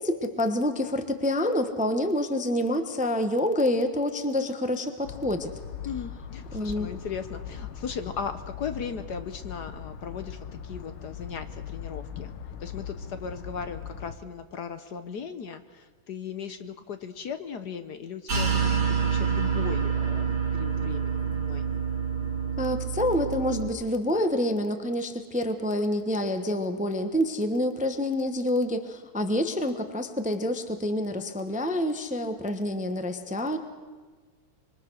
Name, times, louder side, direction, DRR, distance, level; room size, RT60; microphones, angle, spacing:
voice 1, 0.0-5.5 6.5-6.9 22.6-33.6, left 1 dB, 5° right, 7 dB, 0.9 m, -27 dB
sound 1, 5.0-14.2, left 8 dB, 80° left, 1.9 m, -40 dB
voice 2, 5.8-12.3 12.6-21.6, left 6 dB, 60° left, 9 dB, 1.4 m, -37 dB
sound 2, 18.3-23.7, right 7 dB, 80° right, 3.9 m, -27 dB
26.0 x 23.5 x 6.4 m, 1.4 s
omnidirectional pair, 2.2 m